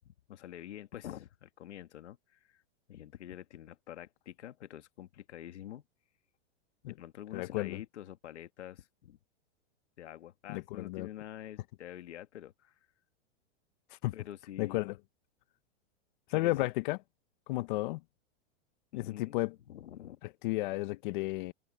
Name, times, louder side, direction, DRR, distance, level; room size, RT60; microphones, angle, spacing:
voice 1, 0.0-2.6 2.9-5.8 6.8-9.2 10.0-12.7 14.1-14.8 16.3-16.7 18.9-19.3 19.7-20.2, left 12 dB, 90° left, 1.7 m, -47 dB
voice 2, 7.3-7.8 10.5-11.1 13.9-14.1 14.6-15.0 16.3-17.0 17.5-18.0 18.9-19.5 20.2-21.5, left 20 dB, 45° left, 0.7 m, -33 dB
supercardioid pair, 150°, 34 cm